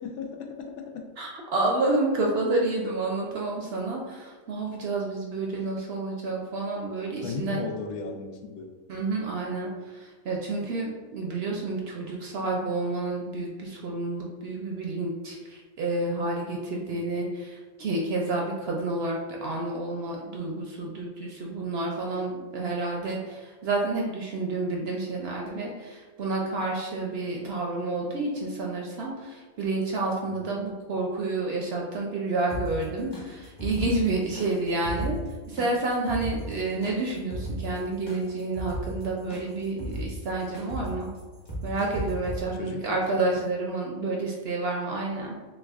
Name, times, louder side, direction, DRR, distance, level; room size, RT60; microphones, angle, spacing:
voice 1, 0.0-1.1 7.2-8.7 16.9-17.0 30.2-30.5 42.5-43.4, left 5 dB, 85° left, 3 dB, 1.0 m, -36 dB
voice 2, 1.2-7.6 8.9-35.1 35.5-41.1 41.6-45.4, right 2 dB, 65° right, -1 dB, 0.6 m, -29 dB
sound 1, 32.5-42.4, right 1 dB, 25° left, 0.7 m, -36 dB
5.9 x 2.3 x 2.4 m, 1.3 s
omnidirectional pair, 1.4 m